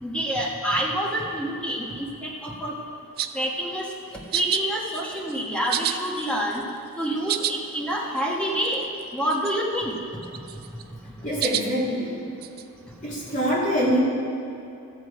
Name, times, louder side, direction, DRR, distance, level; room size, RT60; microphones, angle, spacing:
voice 1, 0.0-2.8 3.3-3.9 4.3-6.6 7.0-8.8 9.1-9.9, right 1 dB, 5° left, -3 dB, 1.3 m, -27 dB
sound 1, 3.2-3.5 4.3-4.6 4.9-5.4 5.7-6.7 7.0-7.5 7.9-8.0 8.2-8.3 8.6-9.0 9.3-9.8 10.2-10.8 11.4-11.7 12.4-12.6, right 11 dB, 45° right, 0.4 m, -29 dB
voice 2, 11.2-12.1 13.0-14.0, equal, 35° left, -6 dB, 2.9 m, -24 dB
13.5 x 8.2 x 4.9 m, 2.7 s
head